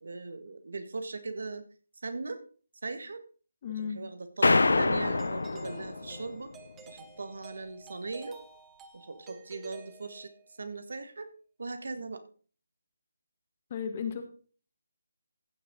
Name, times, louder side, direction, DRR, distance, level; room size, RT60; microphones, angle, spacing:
voice 1, 0.0-1.6 2.0-2.4 2.8-3.2 3.8-6.5 6.9-8.4 8.9-10.3 10.6-11.3 11.6-12.2, right 3 dB, 65° right, 9 dB, 1.7 m, -39 dB
voice 2, 3.6-4.0 13.7-14.2, left 7 dB, 25° left, 8 dB, 1.3 m, -34 dB
sound 1, 4.4-6.4, left 3 dB, 85° left, 0.7 m, -26 dB
Doorbell, 5.2-10.6, right 4 dB, 10° right, 0.9 m, -52 dB
15.0 x 7.0 x 3.8 m, 0.41 s
hypercardioid pair, 175°, 0 cm